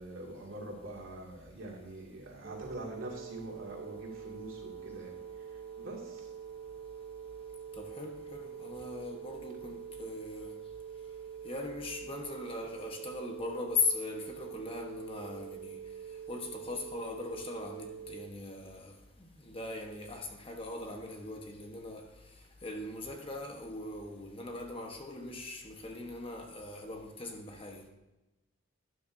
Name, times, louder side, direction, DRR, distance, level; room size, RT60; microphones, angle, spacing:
voice 1, 0.0-5.2 5.8-6.3, right 1 dB, 90° right, 2.3 m, -44 dB
sound 1, 2.4-18.3, right 8 dB, 60° right, 0.9 m, -45 dB
voice 2, 7.8-10.6 11.4-15.8 16.3-18.9 19.2-22.1 22.6-27.9, left 3 dB, 25° left, 1.1 m, -39 dB
12.5 x 10.0 x 2.7 m
head